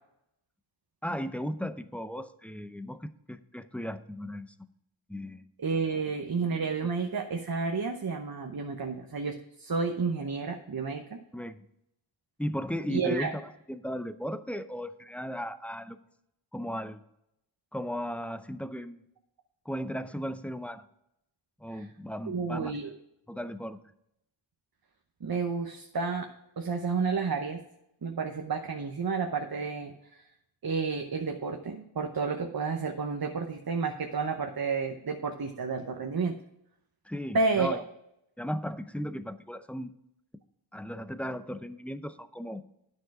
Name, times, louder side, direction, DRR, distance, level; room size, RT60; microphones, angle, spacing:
voice 1, 1.0-4.5 5.1-5.4 11.3-11.6 12.4-13.4 13.7-16.0 16.5-17.0 17.7-19.0 19.7-20.8 21.6-22.7 23.3-23.8 37.1-37.8 38.4-39.9 40.7-42.6, equal, 5° left, 12 dB, 0.6 m, -36 dB
voice 2, 5.6-11.2 12.9-13.3 21.7-21.9 22.3-22.9 25.2-26.3 26.6-27.6 28.0-30.2 30.6-36.3 37.3-37.8, right 4 dB, 45° right, 4 dB, 0.9 m, -31 dB
9.2 x 6.5 x 4.8 m, 0.82 s
cardioid pair, 45°, 48 cm